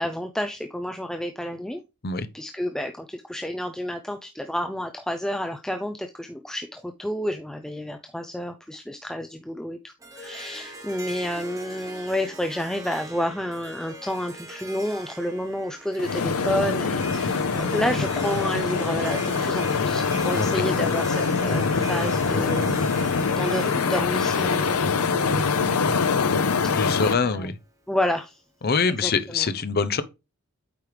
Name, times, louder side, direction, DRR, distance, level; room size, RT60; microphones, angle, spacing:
voice 1, 0.0-1.8 2.3-25.9 26.7-27.5 27.9-28.4 28.8-29.5, left 1 dB, 5° left, 0.4 m, -30 dB
Harp, 10.0-27.3, right 1 dB, 15° right, 1.3 m, -41 dB
sound 1, 16.0-27.1, left 5 dB, 80° left, 0.7 m, -24 dB
voice 2, 26.7-27.5 28.6-30.0, left 5 dB, 45° left, 0.7 m, -24 dB
8.5 x 4.7 x 3.3 m
head